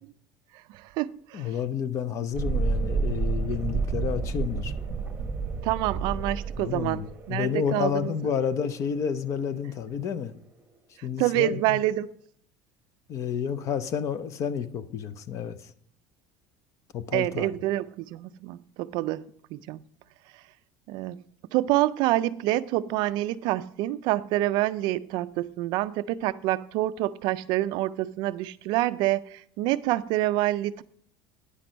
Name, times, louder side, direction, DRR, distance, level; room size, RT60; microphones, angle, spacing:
voice 1, 0.7-1.5 5.6-8.1 11.2-12.1 17.1-19.2 19.5-19.8 20.9-21.2 21.5-30.8, right 16 dB, 55° right, 0.3 m, -27 dB
voice 2, 1.3-4.7 6.6-10.3 11.0-11.8 13.1-15.7 16.9-17.5, left 7 dB, 35° left, 0.5 m, -30 dB
Thunderstorm, 2.3-9.8, right 4 dB, 15° right, 1.1 m, -30 dB
9.9 x 6.0 x 5.1 m
cardioid pair, 165°, 9 cm